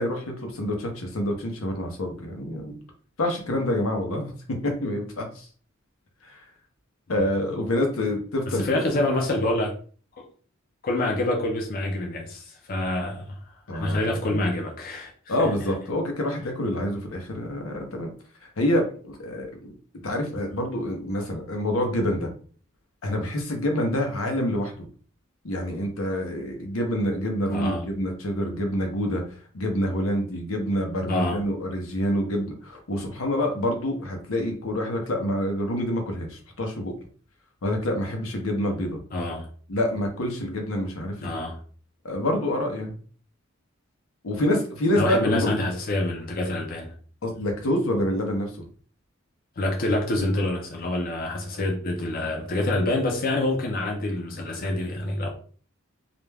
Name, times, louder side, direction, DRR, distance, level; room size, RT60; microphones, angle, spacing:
voice 1, 0.0-2.7 3.2-5.5 6.2-6.4 7.1-8.6 13.7-14.4 15.3-18.1 18.4-19.7 20.0-22.3 23.0-24.7 25.4-29.2 29.5-36.9 37.6-39.0 39.7-41.3 42.0-42.9 44.2-45.5 47.2-48.5, left 1 dB, 90° left, 0.7 m, -27 dB
voice 2, 8.5-9.7 10.2-10.3 10.8-13.3 13.7-15.5 27.5-27.9 31.1-31.4 39.1-39.5 41.2-41.6 45.0-46.9 49.6-55.3, left 1 dB, 45° left, 0.5 m, -26 dB
2.4 x 2.2 x 3.2 m
head